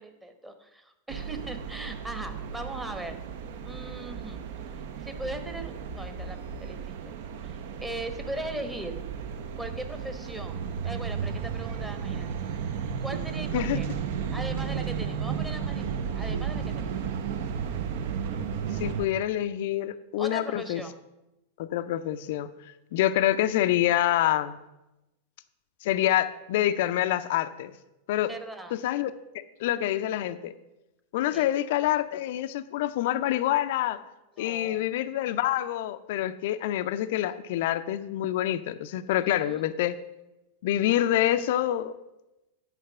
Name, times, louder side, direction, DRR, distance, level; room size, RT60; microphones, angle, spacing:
voice 1, 0.0-3.2 3.6-4.4 4.7-7.1 7.4-9.0 9.6-12.8 13.0-13.9 14.3-16.9 20.2-20.9 28.3-28.8 31.3-31.5 34.4-34.8 39.2-39.7, right 1 dB, 10° right, 7 dB, 1.1 m, -39 dB
sound 1, 1.1-19.1, right 7 dB, 50° right, 0.7 m, -34 dB
voice 2, 18.7-20.8 21.6-22.5 22.9-24.6 25.8-27.7 28.1-28.3 28.7-29.1 29.6-30.5 31.1-34.0 34.4-39.9 40.6-41.9, left 13 dB, 50° left, 12 dB, 0.4 m, -26 dB
9.3 x 5.2 x 6.8 m, 0.95 s
figure-of-eight pair, 90°, 0 cm